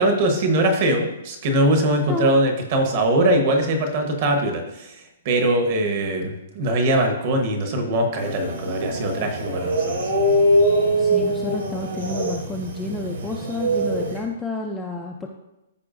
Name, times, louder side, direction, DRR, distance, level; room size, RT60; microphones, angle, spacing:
voice 1, 0.0-10.0, right 1 dB, 30° right, 4 dB, 1.0 m, -21 dB
sound 1, 8.2-14.2, right 1 dB, 60° right, 2.7 m, -23 dB
voice 2, 11.0-15.3, left 3 dB, 5° left, -1 dB, 0.3 m, -30 dB
14.0 x 4.7 x 2.5 m, 0.91 s
hypercardioid pair, 180°, 0 cm